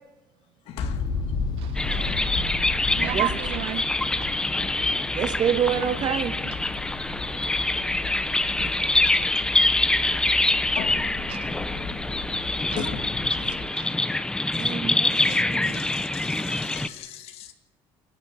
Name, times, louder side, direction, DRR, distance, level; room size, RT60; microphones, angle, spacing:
voice 1, 0.7-1.0 2.0-2.1 10.7-11.0 12.5-13.0 15.1-17.5, left 11 dB, 75° left, 2.3 m, -38 dB
sound 1, 0.8-13.7, left 4 dB, 45° left, 2.9 m, -34 dB
voice 2, 1.6-2.4 3.0-3.9 8.4-8.5 8.9-9.6 10.1-10.3 11.3-11.6 12.7-12.8 13.3-14.4 15.1-15.3, right 15 dB, 65° right, 0.7 m, -36 dB
sound 2, 1.7-16.9, left 2 dB, 5° left, 0.7 m, -25 dB
voice 3, 3.0-3.3 5.1-6.4 8.6-8.7 12.7-12.9 14.6-15.9 16.2-16.6, right 8 dB, 45° right, 1.6 m, -28 dB
28.0 x 11.0 x 10.0 m
cardioid pair, 155°, 10 cm